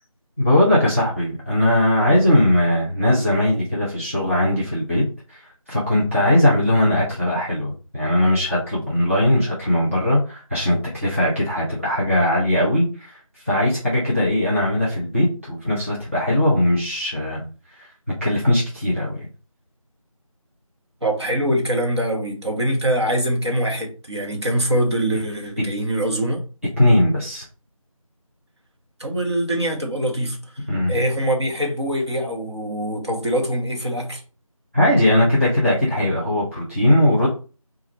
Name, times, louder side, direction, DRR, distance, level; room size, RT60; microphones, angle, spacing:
voice 1, 0.4-5.0 5.3-5.4 5.7-13.2 13.4-17.4 17.8-17.9 18.2-19.2 26.8-27.5 30.7-31.0 34.7-37.3, left 1 dB, 25° right, 0.7 m, -19 dB
voice 2, 21.0-26.4 29.0-34.2, right 1 dB, 50° right, 1.0 m, -23 dB
4.0 x 2.4 x 3.2 m
figure-of-eight pair, 175°, 18 cm